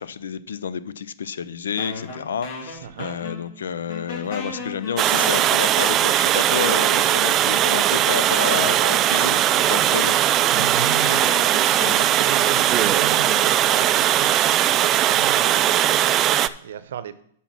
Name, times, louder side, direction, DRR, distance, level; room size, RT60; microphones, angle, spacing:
voice 1, 0.0-10.2 14.9-15.1, left 7 dB, 85° left, 0.5 m, -30 dB
sound 1, 1.8-3.6 3.9-7.1 7.9-8.0 8.4-13.8, left 4 dB, 55° left, 2.7 m, -36 dB
voice 2, 2.8-3.2 4.5-4.6 7.7-7.8 9.6-9.9 10.5-17.2, right 9 dB, 75° right, 0.7 m, -35 dB
Water, 5.0-16.5, right 12 dB, 30° right, 0.3 m, -19 dB
8.2 x 5.7 x 6.0 m
hypercardioid pair, 125°, 0 cm